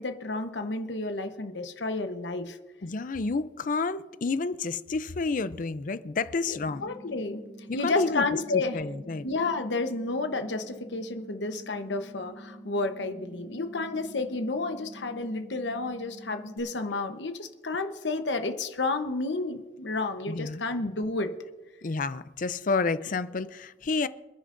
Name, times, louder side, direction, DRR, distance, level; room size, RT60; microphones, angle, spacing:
voice 1, 0.0-2.6 6.8-7.4 7.7-8.8 9.2-21.3, left 3 dB, 80° left, 7 dB, 1.0 m, -31 dB
voice 2, 2.8-6.9 7.7-8.3 8.5-9.3 20.3-20.6 21.8-24.1, left 3 dB, 45° left, 14 dB, 0.5 m, -30 dB
sound 1, 6.6-16.6, right 1 dB, 10° right, 3.2 m, -47 dB
28.0 x 10.0 x 2.6 m, 1.2 s
head